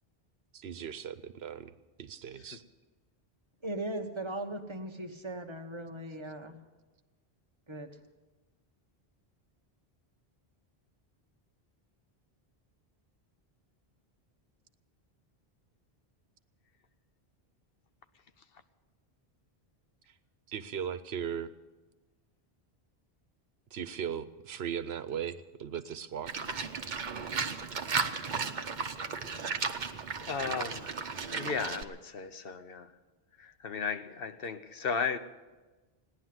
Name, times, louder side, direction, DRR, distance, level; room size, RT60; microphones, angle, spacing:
voice 1, 0.5-1.7 2.0-2.6 20.1-20.2 20.5-21.5 23.7-26.3, right 8 dB, 85° right, 1.0 m, -38 dB
voice 2, 3.6-6.6 7.7-7.9, right 1 dB, 30° right, 1.2 m, -38 dB
Livestock farm animals working animals, 26.3-31.8, right 5 dB, 50° right, 0.9 m, -35 dB
voice 3, 29.4-29.8 30.2-31.0 31.3-33.0 33.4-35.2, left 5 dB, 70° left, 1.0 m, -35 dB
17.0 x 10.5 x 7.7 m
omnidirectional pair, 1.0 m